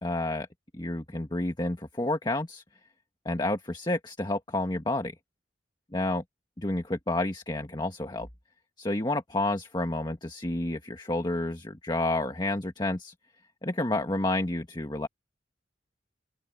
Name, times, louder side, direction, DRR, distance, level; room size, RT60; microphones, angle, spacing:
voice 1, 0.0-0.5 0.7-2.6 3.2-5.1 5.9-6.2 6.6-8.3 8.8-13.1 13.6-15.1, left 2 dB, 25° left, 1.6 m, -30 dB
open air
head